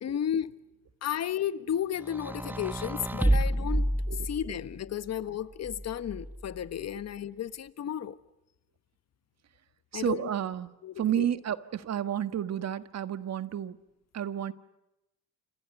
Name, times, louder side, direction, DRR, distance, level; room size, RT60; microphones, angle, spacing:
voice 1, 0.0-0.5 1.0-3.9 4.2-8.2 9.9-10.3 10.8-11.3, left 9 dB, 60° left, 1.3 m, -33 dB
sound 1, 2.0-4.8 5.6-6.6, right 1 dB, 5° right, 1.0 m, -29 dB
voice 2, 3.3-3.7 4.1-4.6 9.9-10.7 11.0-13.8 14.1-14.5, right 10 dB, 60° right, 1.5 m, -32 dB
29.5 x 27.0 x 5.4 m
cardioid pair, 90°, 30 cm